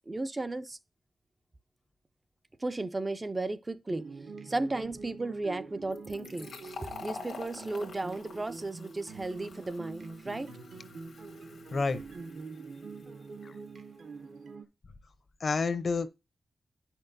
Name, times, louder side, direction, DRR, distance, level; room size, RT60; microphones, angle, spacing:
voice 1, 0.1-0.8 2.6-4.1 4.4-10.5, right 2 dB, 20° right, 0.3 m, -35 dB
sound 1, 3.9-14.6, right 4 dB, 70° right, 0.7 m, -45 dB
Fill (with liquid), 5.9-13.3, left 4 dB, 90° left, 1.3 m, -48 dB
voice 2, 15.4-16.1, left 4 dB, 50° left, 0.6 m, -29 dB
9.4 x 5.8 x 2.6 m
wide cardioid pair, 165°, 0 cm